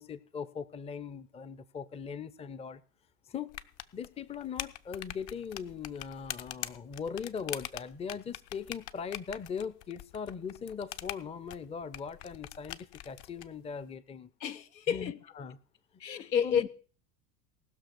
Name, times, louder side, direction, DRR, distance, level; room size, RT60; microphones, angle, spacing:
voice 1, 0.0-2.8 3.3-3.5 3.9-14.3 14.9-15.6 16.4-16.6, left 6 dB, 15° left, 0.6 m, -40 dB
sound 1, 3.5-13.5, left 13 dB, 50° left, 0.9 m, -43 dB
voice 2, 14.4-15.2 16.0-16.7, left 8 dB, 85° left, 1.1 m, -30 dB
18.5 x 6.3 x 6.1 m
hypercardioid pair, 80°, 50 cm